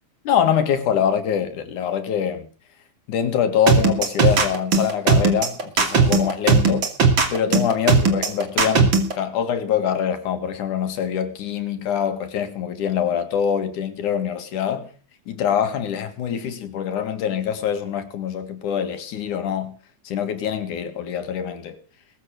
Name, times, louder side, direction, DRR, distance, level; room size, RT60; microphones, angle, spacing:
voice 1, 0.3-2.5 3.1-6.9 7.3-14.9 15.3-19.8 20.1-21.8, left 8 dB, 85° left, 3.4 m, -24 dB
sound 1, 3.7-9.1, right 4 dB, 40° right, 3.1 m, -17 dB
21.0 x 7.9 x 6.5 m
omnidirectional pair, 3.5 m